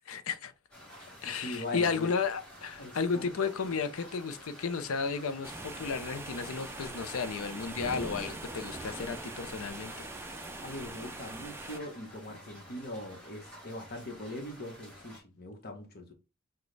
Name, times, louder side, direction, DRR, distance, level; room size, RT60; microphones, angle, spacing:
voice 1, 0.1-0.5 1.2-10.1, left 5 dB, 70° left, 0.5 m, -33 dB
sound 1, 0.7-15.2, equal, 5° left, 1.5 m, -51 dB
voice 2, 1.4-2.1 2.8-3.3 10.6-16.1, left 1 dB, 45° left, 1.0 m, -41 dB
sound 2, 5.4-11.8, right 2 dB, 10° right, 0.4 m, -42 dB
6.1 x 2.2 x 3.2 m
head